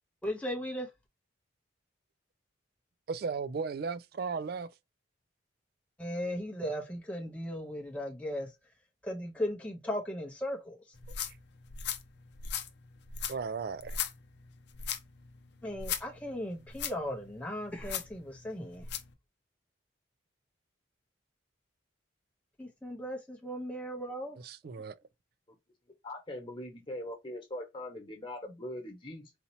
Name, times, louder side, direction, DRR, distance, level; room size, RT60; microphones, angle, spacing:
voice 1, 0.2-0.9 6.0-8.5 9.0-10.8 15.6-18.9 22.6-24.4, equal, 5° left, 0.7 m, -37 dB
voice 2, 3.1-4.7 13.3-14.0 24.4-24.9, right 5 dB, 50° right, 0.3 m, -35 dB
sound 1, 10.9-19.1, left 8 dB, 60° left, 0.6 m, -39 dB
voice 3, 26.0-29.3, left 1 dB, 25° left, 1.2 m, -41 dB
4.2 x 2.7 x 2.7 m
head